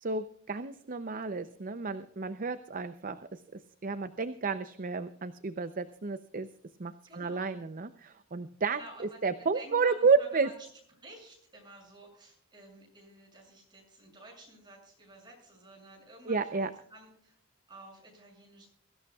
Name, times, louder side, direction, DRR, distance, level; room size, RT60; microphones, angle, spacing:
voice 1, 0.0-3.2 3.8-6.5 6.8-10.5 16.3-16.7, right 4 dB, 40° right, 10 dB, 0.6 m, -31 dB
voice 2, 7.1-7.6 8.7-9.2 9.5-10.6 11.0-17.4 17.7-18.7, right 2 dB, 20° right, -1 dB, 7.2 m, -52 dB
23.5 x 14.5 x 2.4 m, 0.64 s
head